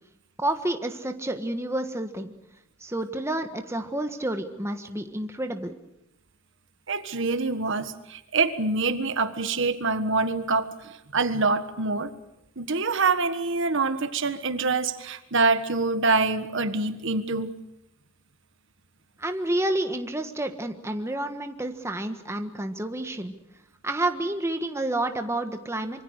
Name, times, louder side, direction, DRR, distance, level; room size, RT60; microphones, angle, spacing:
voice 1, 0.4-2.3 2.8-5.8 19.2-23.3 23.8-26.0, right 1 dB, 15° right, 6 dB, 1.4 m, -29 dB
voice 2, 6.9-12.1 12.6-17.5, right 3 dB, 60° right, 10 dB, 1.5 m, -25 dB
26.0 x 24.0 x 6.6 m, 0.83 s
head